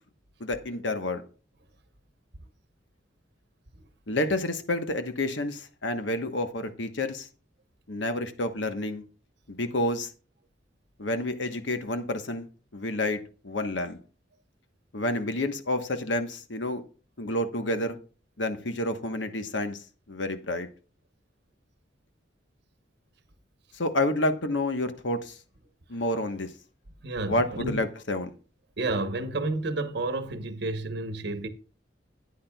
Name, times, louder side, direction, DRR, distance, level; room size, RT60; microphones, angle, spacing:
voice 1, 0.4-1.2 4.1-7.3 7.9-9.0 9.5-10.1 11.0-12.5 12.7-14.0 14.9-16.8 17.2-18.0 18.4-19.8 20.1-20.7 23.7-25.4 25.9-26.5 27.2-28.3, left 1 dB, 70° left, 1.2 m, -29 dB
voice 2, 27.0-27.8 28.8-31.5, right 2 dB, 60° right, 1.1 m, -30 dB
13.0 x 9.7 x 2.3 m
head